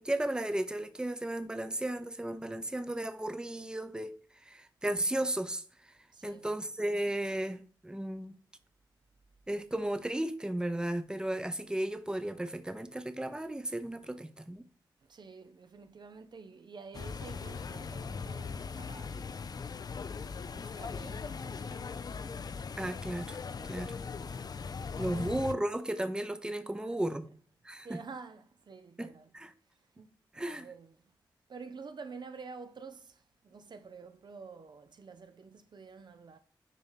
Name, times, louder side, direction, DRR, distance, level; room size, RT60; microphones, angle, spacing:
voice 1, 0.0-5.9 6.2-8.4 9.5-14.6 22.8-23.4 23.7-24.0 24.9-27.3 27.6-28.0 29.0-29.5 30.3-30.7, right 1 dB, 10° right, 0.7 m, -35 dB
voice 2, 6.1-6.5 15.0-19.6 20.5-22.0 25.0-25.4 26.7-27.3 27.8-29.3 29.8-31.1 31.5-36.4, right 5 dB, 60° right, 0.6 m, -49 dB
sound 1, 16.9-25.5, left 5 dB, 50° left, 0.4 m, -39 dB
6.8 x 3.0 x 5.7 m
cardioid pair, 50°, 9 cm